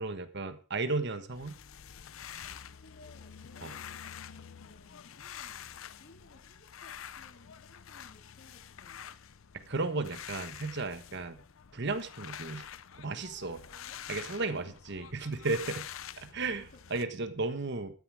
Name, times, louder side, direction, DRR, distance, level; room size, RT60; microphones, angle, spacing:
voice 1, 0.0-1.5 3.6-3.7 9.5-11.4 11.7-12.6 12.9-13.6 14.1-15.8 16.2-16.6 16.9-17.9, right 3 dB, 60° right, 10 dB, 1.4 m, -34 dB
sound 1, 1.3-17.0, left 9 dB, 80° left, 0.6 m, -47 dB
voice 2, 2.6-9.2 11.1-11.2 13.1-14.8 16.2-16.8, left 2 dB, 55° left, 2 dB, 3.6 m, -59 dB
12.5 x 9.9 x 4.8 m, 0.37 s
head